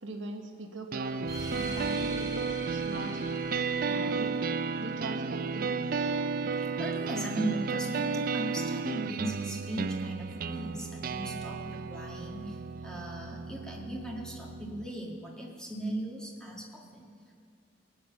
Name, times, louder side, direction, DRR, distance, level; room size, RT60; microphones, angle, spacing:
voice 1, 0.0-3.2 3.9-4.3 4.8-5.9, right 2 dB, 80° right, 3 dB, 1.3 m, -41 dB
sound 1, 0.9-14.9, right 4 dB, 50° right, 0.4 m, -33 dB
sound 2, 1.2-6.3, right 2 dB, 20° right, 1.6 m, -44 dB
voice 2, 6.5-17.1, right 1 dB, 5° left, -2 dB, 1.8 m, -38 dB
18.5 x 8.8 x 6.7 m, 2.5 s
head